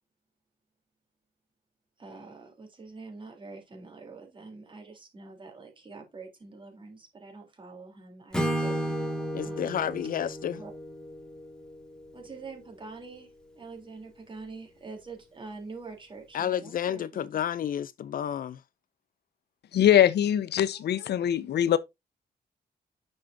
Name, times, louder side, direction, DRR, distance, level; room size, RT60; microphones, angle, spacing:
voice 1, 2.0-9.9 10.6-10.7 12.1-17.4 20.7-20.8, right 4 dB, 30° right, 3.3 m, -45 dB
Acoustic guitar / Strum, 8.3-12.3, right 1 dB, 5° left, 1.9 m, -33 dB
voice 2, 9.3-10.6 16.3-18.6, left 9 dB, 55° left, 0.5 m, -31 dB
voice 3, 19.7-21.8, left 10 dB, 85° left, 0.8 m, -22 dB
9.6 x 6.6 x 2.6 m
wide cardioid pair, 175°, 17 cm